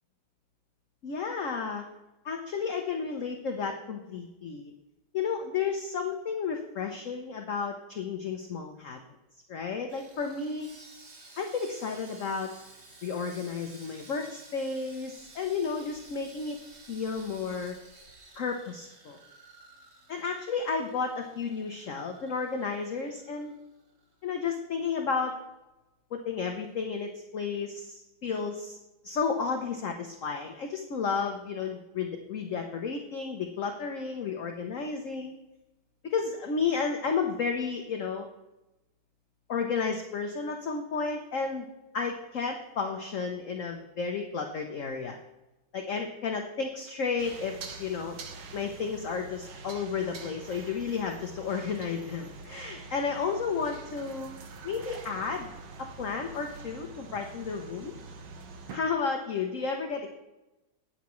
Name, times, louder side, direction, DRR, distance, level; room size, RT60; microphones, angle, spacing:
voice 1, 1.0-1.8 2.2-4.7 5.1-9.0 9.5-10.7 11.4-12.5 13.0-16.6 16.9-17.7 18.3-19.2 20.1-23.5 24.2-25.3 26.1-28.8 29.0-35.3 36.0-38.3 39.5-41.7 41.9-45.2 45.7-48.2 48.5-54.3 54.6-55.5 55.8-57.9 58.7-60.1, left 5 dB, 55° left, 4 dB, 0.9 m, -32 dB
Sawing, 9.9-24.1 24.4-24.6 25.0-25.2, right 3 dB, 35° right, 1.5 m, -54 dB
sound 1, 47.2-58.8, right 3 dB, 65° right, 1.7 m, -45 dB
19.0 x 7.1 x 3.1 m, 0.99 s
omnidirectional pair, 2.2 m